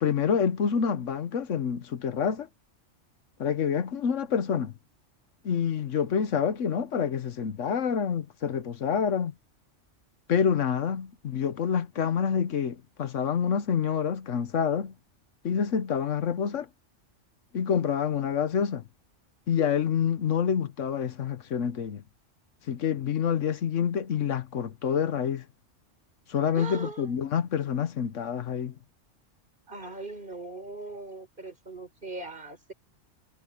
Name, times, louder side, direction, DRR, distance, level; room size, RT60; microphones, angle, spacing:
voice 1, 0.0-2.5 3.4-4.7 5.4-9.3 10.3-14.9 15.4-16.7 17.5-18.8 19.5-22.0 22.7-25.4 26.3-28.7, left 7 dB, 80° left, 1.3 m, -27 dB
voice 2, 26.5-27.2 29.7-32.7, right 3 dB, 40° right, 4.3 m, -40 dB
omnidirectional pair, 1.3 m